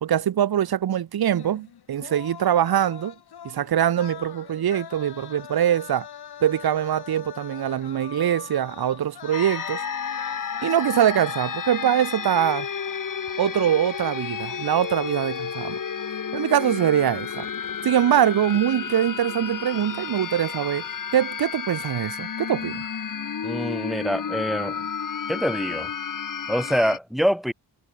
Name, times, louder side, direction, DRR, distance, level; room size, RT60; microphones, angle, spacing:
voice 1, 0.0-3.1 3.4-6.1 6.4-9.8 10.6-12.7 13.4-15.8 16.3-17.5 17.8-20.8 21.1-22.8, right 10 dB, 65° right, 1.3 m, -23 dB
sound 1, 1.2-10.9, left 9 dB, 70° left, 3.7 m, -43 dB
sound 2, 9.3-27.0, left 7 dB, 50° left, 4.7 m, -32 dB
voice 2, 23.4-24.8 25.3-25.9 26.5-27.5, equal, ahead, 0.8 m, -25 dB
wide cardioid pair, 150°, 40 cm